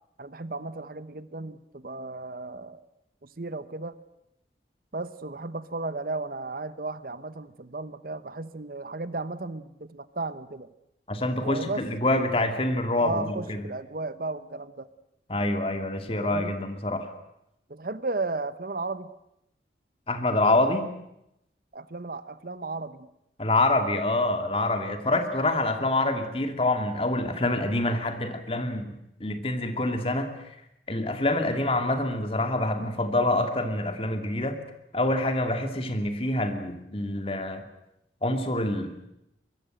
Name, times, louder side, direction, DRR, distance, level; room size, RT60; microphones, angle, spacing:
voice 1, 0.2-2.8 3.2-4.0 4.9-10.7 11.4-11.8 12.9-14.9 16.2-16.6 17.7-19.1 21.7-23.1, right 3 dB, 55° right, 14 dB, 0.9 m, -34 dB
voice 2, 11.1-13.7 15.3-17.1 20.1-20.9 23.4-30.3 30.9-34.6 34.9-37.7 38.2-38.9, left 2 dB, 30° left, 7 dB, 2.4 m, -26 dB
24.0 x 21.5 x 7.7 m, 0.82 s
head